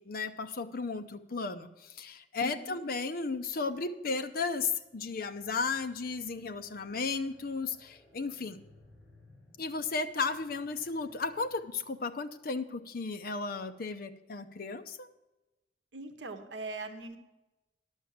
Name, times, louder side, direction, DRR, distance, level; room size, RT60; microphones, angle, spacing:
voice 1, 0.0-8.6 9.6-15.1, left 4 dB, 50° left, 9 dB, 0.6 m, -34 dB
voice 2, 2.4-2.8 15.9-17.2, right 3 dB, 75° right, 8 dB, 0.9 m, -41 dB
sound 1, 4.6-12.1, left 2 dB, 35° left, 4.6 m, -62 dB
11.0 x 6.4 x 7.1 m, 1.0 s
head